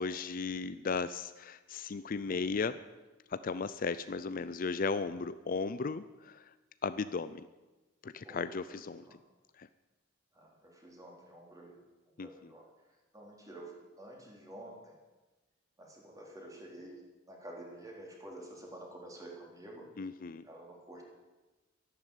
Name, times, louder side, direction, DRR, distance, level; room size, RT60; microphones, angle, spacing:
voice 1, 0.0-2.8 3.3-6.4 6.8-7.5 8.0-9.0 9.6-9.7 12.2-12.5 20.0-20.4, left 4 dB, 45° left, 14 dB, 0.5 m, -36 dB
voice 2, 8.2-9.2 10.3-11.8 12.2-12.7 13.1-14.9 15.8-17.0 17.3-19.9 20.4-21.0, right 1 dB, 15° right, -1 dB, 3.7 m, -49 dB
13.0 x 12.0 x 9.1 m, 1.1 s
head